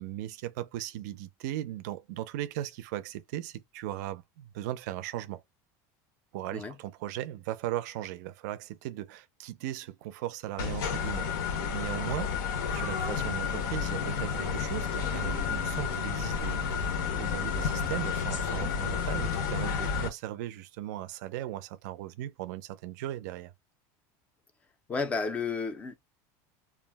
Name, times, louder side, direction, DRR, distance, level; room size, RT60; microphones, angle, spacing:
voice 1, 0.0-5.4 6.3-11.3 11.7-23.5, right 13 dB, 75° right, 0.4 m, -38 dB
sound 1, 10.6-20.1, left 6 dB, 85° left, 0.7 m, -31 dB
voice 2, 24.9-25.9, left 4 dB, 15° left, 0.4 m, -32 dB
2.3 x 2.0 x 3.2 m
cardioid pair, 165°, 9 cm